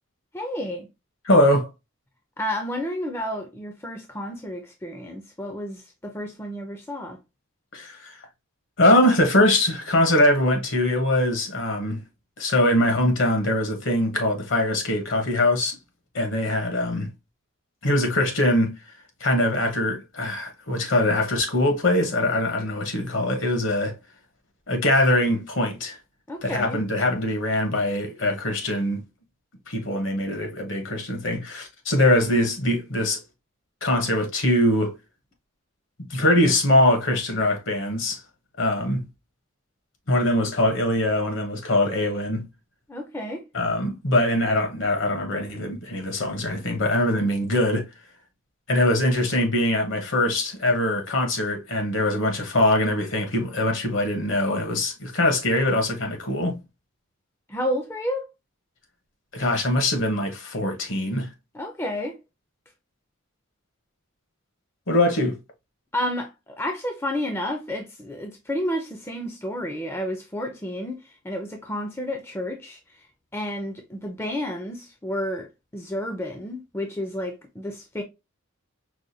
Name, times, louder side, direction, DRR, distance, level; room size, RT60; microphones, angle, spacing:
voice 1, 0.3-0.9 2.4-7.2 26.3-26.8 42.9-43.4 57.5-58.3 61.5-62.2 65.9-73.1 73.3-75.5 75.7-78.0, equal, 10° left, 0.4 m, -31 dB
voice 2, 1.2-1.7 7.7-8.2 8.8-12.0 12.4-15.8 16.1-17.1 17.8-18.8 19.2-24.0 24.7-26.0 26.4-29.0 29.7-33.2 33.8-34.9 36.0-38.2 38.6-39.0 40.1-42.5 43.5-47.8 48.7-56.6 59.3-61.3 64.9-65.4, left 1 dB, 65° left, 1.0 m, -22 dB
4.8 x 2.2 x 2.6 m
head